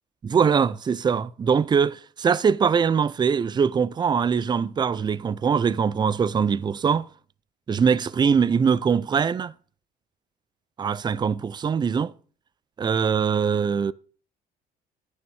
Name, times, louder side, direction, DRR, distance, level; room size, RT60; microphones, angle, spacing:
voice 1, 0.2-7.1 7.7-9.5 10.8-12.1 12.8-13.9, right 6 dB, 25° right, 0.5 m, -22 dB
9.2 x 6.4 x 6.4 m
cardioid pair, 110°, 17 cm